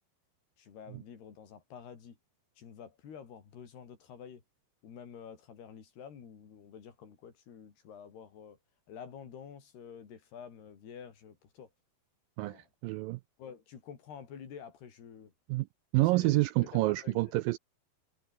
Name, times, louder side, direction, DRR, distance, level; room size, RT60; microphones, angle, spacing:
voice 1, 0.6-2.2 2.6-4.4 4.8-8.6 8.9-11.7 12.4-12.7 13.4-15.3 16.0-17.3, left 7 dB, 75° left, 5.9 m, -49 dB
voice 2, 12.4-13.2 15.5-15.7 15.9-17.6, right 20 dB, 85° right, 2.0 m, -28 dB
omnidirectional pair, 4.6 m